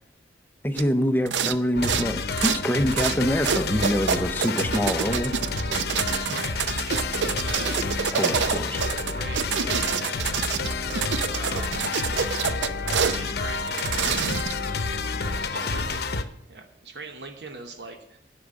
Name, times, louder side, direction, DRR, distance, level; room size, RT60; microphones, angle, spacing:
voice 1, 0.6-5.3 8.2-8.8, equal, 10° left, 8 dB, 0.7 m, -25 dB
sound 1, 0.8-0.9 1.3-1.6 1.8-2.6 2.9-3.2 3.4-13.2 13.7-14.7, right 7 dB, 85° right, 0.6 m, -26 dB
sound 2, 1.7-16.2, left 4 dB, 60° left, 0.8 m, -29 dB
voice 2, 6.1-7.9 8.5-10.4 11.3-11.9 13.2-14.3 15.4-18.2, right 3 dB, 70° right, 4 dB, 1.1 m, -41 dB
10.0 x 6.1 x 8.4 m, 0.80 s
head